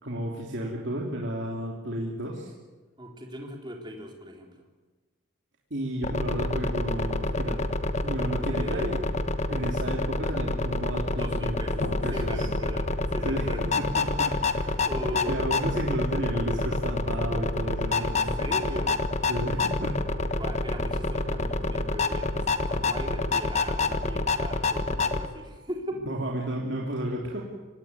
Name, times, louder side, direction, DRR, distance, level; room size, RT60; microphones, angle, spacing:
voice 1, 0.0-2.5 5.7-7.7 8.0-9.2 9.5-12.5 13.2-18.3 19.3-20.0 20.3-20.4 26.0-27.4, right 1 dB, 55° right, -2 dB, 3.3 m, -32 dB
voice 2, 3.0-4.5 8.2-9.0 11.2-13.8 14.8-15.4 18.0-19.0 20.4-26.0, equal, 20° right, 2 dB, 3.8 m, -39 dB
sound 1, 6.0-25.3, left 3 dB, 30° left, 1.3 m, -28 dB
sound 2, 11.8-15.8, left 1 dB, 65° left, 1.4 m, -40 dB
25.0 x 18.5 x 9.8 m, 1.3 s
head